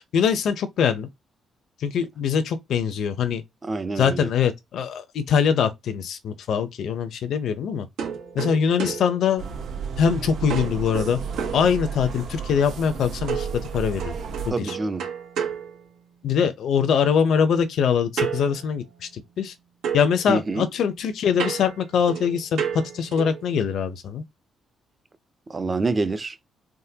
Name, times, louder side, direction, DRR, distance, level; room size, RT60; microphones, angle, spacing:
voice 1, 0.1-1.1 1.8-3.4 4.0-7.9 8.3-9.4 10.0-11.2 11.5-14.1 14.5-14.8 16.2-19.5 19.9-22.6 22.9-24.2, left 7 dB, 70° left, 0.6 m, -23 dB
voice 2, 3.6-4.3 14.5-15.1 20.3-20.7 25.5-26.4, right 3 dB, 30° right, 0.6 m, -26 dB
sound 1, 8.0-10.1 10.5-12.3 13.3-16.5 18.2-19.5 19.8-23.5, right 7 dB, 85° right, 1.2 m, -33 dB
sound 2, 9.4-14.5, right 6 dB, 65° right, 0.9 m, -33 dB
3.6 x 2.2 x 2.8 m
cardioid pair, 90°, 0 cm